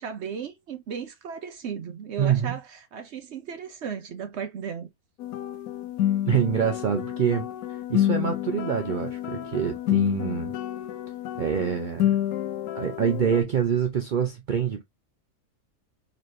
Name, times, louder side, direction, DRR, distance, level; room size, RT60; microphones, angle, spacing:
voice 1, 0.0-4.9, right 7 dB, 60° right, 0.8 m, -35 dB
voice 2, 2.2-2.6 6.3-7.5 7.9-10.5 11.4-12.1 12.7-14.8, right 8 dB, 75° right, 0.4 m, -25 dB
sound 1, 5.2-13.4, left 12 dB, 80° left, 1.1 m, -29 dB
4.1 x 3.1 x 2.5 m
omnidirectional pair, 1.6 m